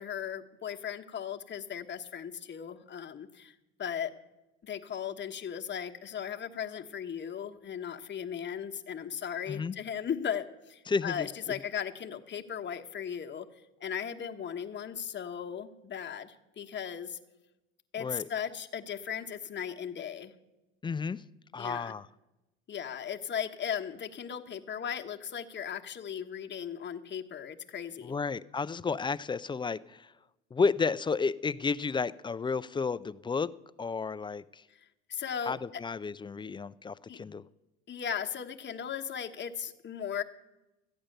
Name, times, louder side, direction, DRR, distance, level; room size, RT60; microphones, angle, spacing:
voice 1, 0.0-4.1 4.6-13.5 13.8-17.2 17.9-20.3 21.6-21.9 22.7-28.2 35.1-35.5 37.1-37.2 37.9-40.2, left 8 dB, 35° left, 5 dB, 1.1 m, -37 dB
voice 2, 10.9-11.3 18.0-18.3 20.8-21.2 21.5-22.1 28.0-30.1 30.5-33.5 33.8-34.6 35.5-37.4, left 5 dB, 15° left, 16 dB, 0.4 m, -32 dB
14.0 x 8.8 x 6.6 m, 0.99 s
hypercardioid pair, 75°, 31 cm